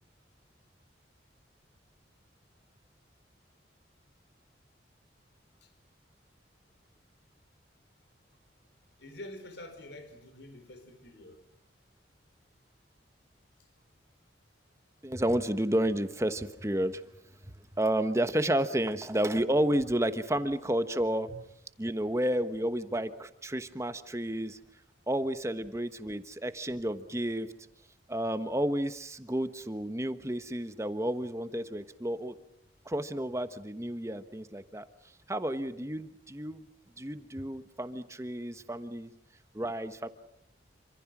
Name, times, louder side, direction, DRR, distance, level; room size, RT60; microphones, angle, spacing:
voice 1, 9.0-11.4 21.3-21.4, left 1 dB, 70° left, 9 dB, 4.4 m, -47 dB
voice 2, 15.0-17.0 17.8-21.3 21.8-24.6 25.1-27.5 28.1-32.4 32.8-34.9 35.3-36.6 37.0-39.1 39.5-40.1, right 1 dB, 15° right, 10 dB, 1.2 m, -31 dB
27.5 x 26.0 x 6.1 m, 0.74 s
head